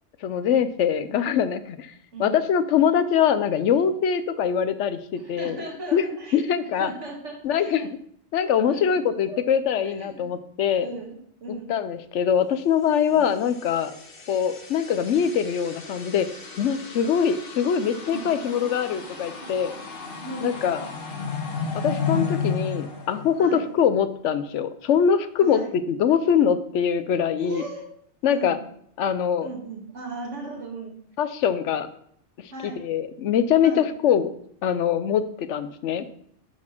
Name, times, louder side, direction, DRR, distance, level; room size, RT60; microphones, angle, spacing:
voice 1, 0.2-1.9 2.2-5.6 5.9-6.0 6.3-6.9 7.4-7.9 8.3-10.9 11.7-13.9 14.3-16.3 16.6-19.7 20.4-20.8 21.7-25.6 25.9-27.6 28.2-28.6 29.0-29.5 31.2-31.9 32.4-34.3 34.6-36.0, left 8 dB, 85° left, 12 dB, 1.0 m, -23 dB
voice 2, 5.2-6.5 6.8-7.9 8.7-9.0 9.3-9.4 9.8-10.2 10.8-11.8 13.1-13.3 18.1-18.3 20.2-20.6 23.4-23.7 25.4-25.7 27.4-27.8 28.3-28.6 29.4-31.0 32.5-32.9 33.6-33.9, right 2 dB, 85° right, 0 dB, 2.1 m, -37 dB
sound 1, 13.2-23.9, left 5 dB, 55° left, 1.3 m, -33 dB
10.5 x 4.2 x 4.4 m, 0.66 s
omnidirectional pair, 1.2 m